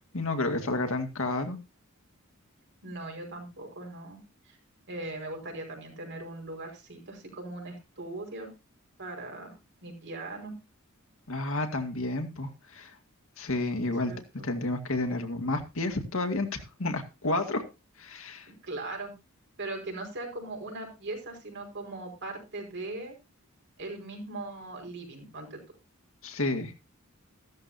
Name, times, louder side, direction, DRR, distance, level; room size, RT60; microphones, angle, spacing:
voice 1, 0.1-1.6 11.3-12.9 13.4-14.1 14.4-17.6 18.0-18.5 26.2-26.7, left 2 dB, 70° left, 5 dB, 2.0 m, -30 dB
voice 2, 2.8-4.2 4.5-4.6 4.9-8.5 9.0-9.5 9.8-10.5 14.0-14.5 18.4-19.1 19.6-23.1 23.8-25.6, right 2 dB, 60° right, 2 dB, 5.1 m, -39 dB
14.5 x 13.0 x 2.8 m, 0.26 s
head